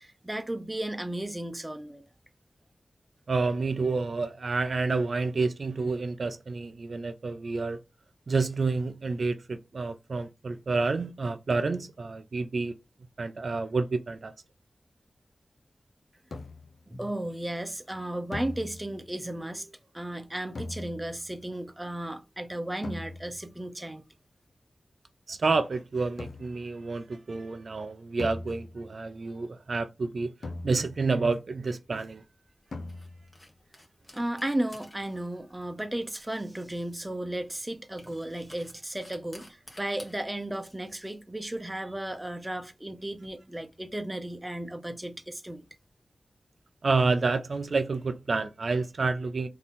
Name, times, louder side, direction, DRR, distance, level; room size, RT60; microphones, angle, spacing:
voice 1, 0.0-2.0 16.9-24.0 34.1-45.6, right 1 dB, 20° right, 0.8 m, -34 dB
voice 2, 3.3-7.8 8.3-12.8 13.2-14.3 25.3-30.3 30.6-32.2 46.8-49.5, right 3 dB, 70° right, 0.4 m, -29 dB
sound 1, 16.3-16.9 18.3-19.2 20.5-21.3 22.8-23.5 26.2-26.7 28.2-29.1 30.4-31.2 32.7-33.4, left 2 dB, 90° left, 0.6 m, -40 dB
sound 2, 31.4-43.3, left 1 dB, 25° left, 1.4 m, -55 dB
3.9 x 2.8 x 3.6 m
cardioid pair, 50°, 0 cm